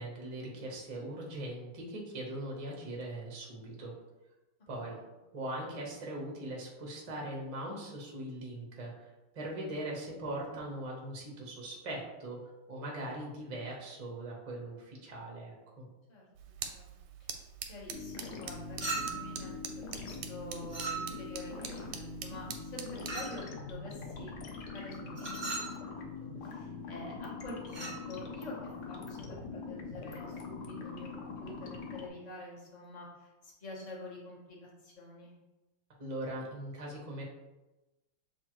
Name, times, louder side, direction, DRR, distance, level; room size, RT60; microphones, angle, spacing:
voice 1, 0.0-3.9 4.7-5.0 5.3-12.4 12.7-15.9 36.0-37.2, right 1 dB, 50° right, -2 dB, 0.4 m, -40 dB
sound 1, 16.3-23.3, right 8 dB, 90° right, 1.5 m, -45 dB
voice 2, 16.6-17.0 17.7-25.9 26.2-35.3, left 2 dB, 35° left, -3 dB, 0.6 m, -47 dB
sound 2, 17.9-32.1, left 4 dB, 70° left, 1.0 m, -43 dB
Chink clink, 18.8-19.4 20.7-21.4 23.1-23.4 25.1-25.8 27.7-28.0, right 3 dB, 15° right, 1.0 m, -37 dB
6.8 x 2.5 x 3.0 m, 1.1 s
omnidirectional pair, 2.3 m